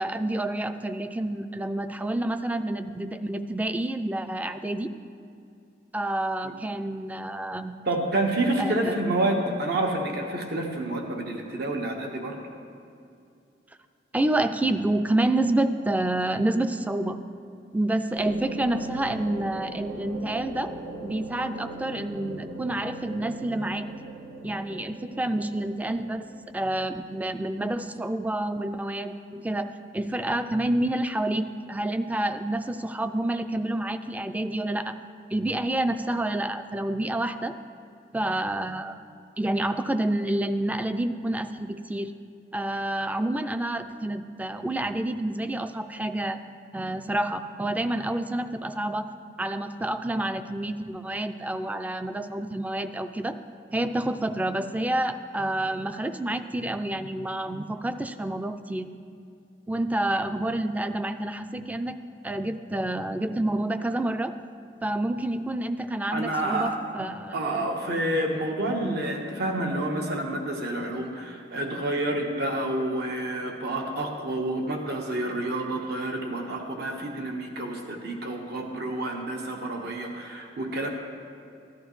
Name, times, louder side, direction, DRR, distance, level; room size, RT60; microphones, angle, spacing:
voice 1, 0.0-4.9 5.9-7.7 8.6-9.0 14.1-17.2 17.7-23.9 24.4-26.3 26.5-35.0 35.3-37.6 38.1-39.0 39.4-42.1 42.5-46.4 46.7-49.1 49.4-53.4 53.7-58.9 59.7-62.0 62.2-64.4 64.8-67.4, right 1 dB, 10° right, 10 dB, 0.4 m, -28 dB
voice 2, 7.9-12.4 66.1-67.1 67.3-80.9, right 1 dB, 65° right, 2 dB, 1.1 m, -29 dB
sound 1, 18.2-26.8, right 2 dB, 85° right, 1.2 m, -40 dB
14.0 x 11.5 x 3.1 m, 2.6 s
head